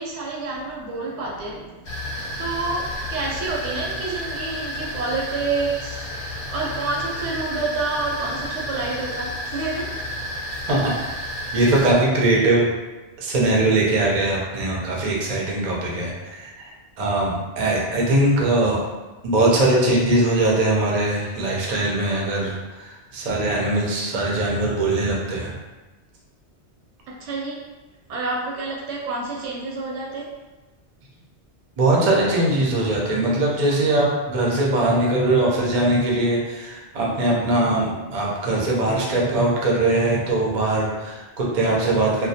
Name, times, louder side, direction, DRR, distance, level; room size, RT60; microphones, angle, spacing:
voice 1, 0.0-1.7 2.0-6.1 6.5-9.9 27.1-27.6 28.1-30.3, right 3 dB, 85° right, -3 dB, 0.9 m, -28 dB
sound 1, 1.8-11.9, equal, 60° left, 0.7 m, -31 dB
voice 2, 11.5-12.7 13.2-16.7 17.0-18.8 19.2-25.5 31.8-42.3, right 2 dB, 50° right, -3 dB, 0.5 m, -21 dB
2.2 x 2.1 x 2.7 m, 1.2 s
omnidirectional pair, 1.2 m